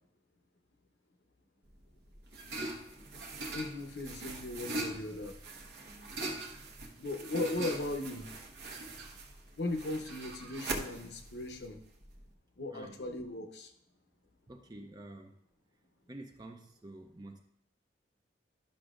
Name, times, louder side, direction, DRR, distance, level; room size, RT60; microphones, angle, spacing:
sound 1, 1.7-12.3, right 2 dB, 65° right, 1.0 m, -42 dB
voice 1, 3.5-5.3 7.0-8.3 9.6-11.8 12.6-13.7, left 2 dB, 65° left, 5 dB, 0.9 m, -37 dB
voice 2, 14.5-15.3 16.1-17.4, right 2 dB, 20° right, 3 dB, 0.5 m, -48 dB
11.5 x 6.0 x 2.5 m, 0.75 s
head